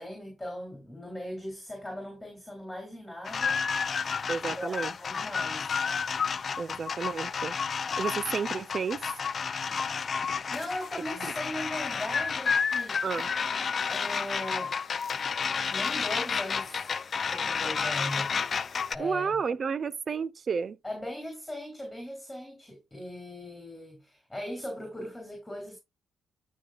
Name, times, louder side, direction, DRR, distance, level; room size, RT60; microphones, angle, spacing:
voice 1, 0.0-3.6 4.4-5.8 10.5-13.0 13.9-14.8 15.7-16.9 17.2-18.3 18.9-19.4 20.8-25.8, left 1 dB, 5° left, 3.7 m, -39 dB
sound 1, 3.3-19.0, left 6 dB, 40° left, 0.5 m, -31 dB
voice 2, 4.3-4.9 6.6-7.6 8.0-9.0 13.0-13.3 19.0-20.8, right 5 dB, 45° right, 0.6 m, -31 dB
13.5 x 5.4 x 2.5 m
cardioid pair, 95°, 0 cm